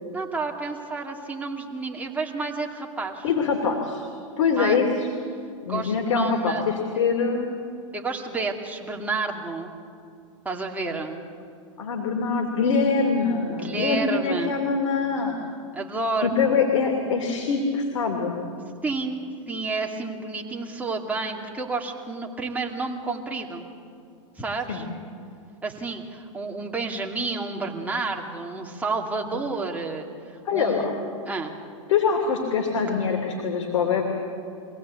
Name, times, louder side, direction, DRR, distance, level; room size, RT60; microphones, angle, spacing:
voice 1, 0.1-3.3 4.6-4.8 5.6-6.6 7.9-9.7 10.4-11.2 13.5-14.5 15.7-16.6 18.8-23.7 24.4-24.8 25.6-30.9 31.3-31.5, right 3 dB, 10° right, 0 dB, 2.5 m, -30 dB
voice 2, 3.2-4.1 4.4-5.1 5.6-7.5 11.8-15.4 16.2-18.5 24.7-24.9 30.4-30.9 31.9-34.0, left 5 dB, 75° left, 2 dB, 2.8 m, -24 dB
24.0 x 17.0 x 8.4 m, 2.5 s
hypercardioid pair, 120°, 17 cm